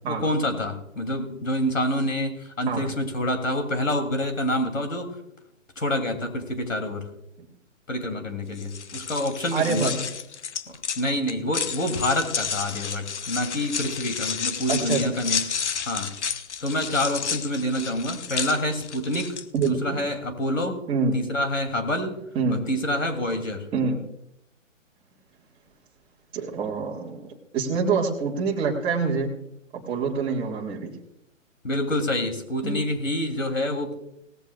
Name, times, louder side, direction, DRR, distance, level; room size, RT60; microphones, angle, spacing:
voice 1, 0.1-5.1 5.8-7.0 7.9-9.9 10.7-16.1 16.6-19.4 19.6-20.8 21.1-22.2 22.5-23.6 31.6-33.9, left 1 dB, 80° left, 5 dB, 3.1 m, -27 dB
sound 1, 8.5-19.7, left 7 dB, 60° left, 0.8 m, -31 dB
voice 2, 9.5-9.9 14.7-15.0 19.5-20.0 20.9-21.1 22.4-22.6 23.7-24.0 26.3-29.3 29.7-30.9 32.6-32.7, right 5 dB, 15° right, -3 dB, 1.8 m, -26 dB
18.5 x 14.5 x 2.4 m, 0.80 s
figure-of-eight pair, 135°, 39 cm